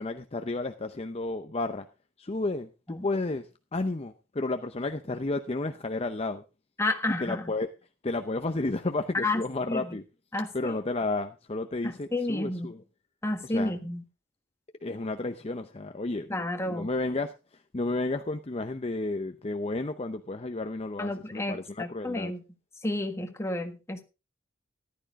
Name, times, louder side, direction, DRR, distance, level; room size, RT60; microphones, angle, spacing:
voice 1, 0.0-1.9 2.2-3.5 3.7-6.4 7.1-7.7 8.0-10.0 10.5-12.8 13.4-13.8 14.8-16.3 16.7-22.3, left 2 dB, 30° left, 0.7 m, -32 dB
voice 2, 6.8-7.4 9.2-9.4 9.7-10.0 10.3-10.5 11.8-12.7 13.2-14.0 16.3-16.9 21.0-22.4 22.8-24.0, left 2 dB, 15° left, 1.6 m, -31 dB
14.5 x 11.5 x 3.6 m
head